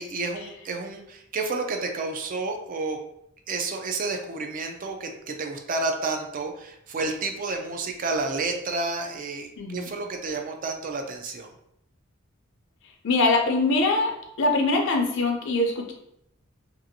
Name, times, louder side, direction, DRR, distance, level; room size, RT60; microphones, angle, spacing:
voice 1, 0.0-3.0 3.5-11.5, right 3 dB, 40° right, 4 dB, 0.4 m, -30 dB
voice 2, 9.6-9.9 13.0-14.1 14.4-15.9, left 2 dB, 65° left, 2 dB, 0.5 m, -23 dB
2.6 x 2.4 x 2.6 m, 0.77 s
head